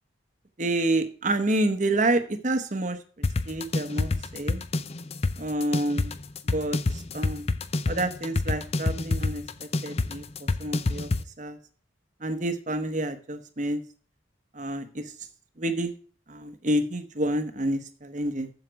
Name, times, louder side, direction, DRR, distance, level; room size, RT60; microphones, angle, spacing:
voice 1, 0.6-3.0 3.5-4.6 5.4-6.2 6.5-7.5 7.9-11.1 11.4-11.6 12.2-13.8 14.5-15.1 15.6-15.9 16.3-18.5, right 1 dB, 40° right, 10 dB, 0.9 m, -28 dB
sound 1, 3.2-11.2, left 3 dB, 30° left, 0.5 m, -27 dB
7.8 x 7.3 x 6.3 m, 0.42 s
head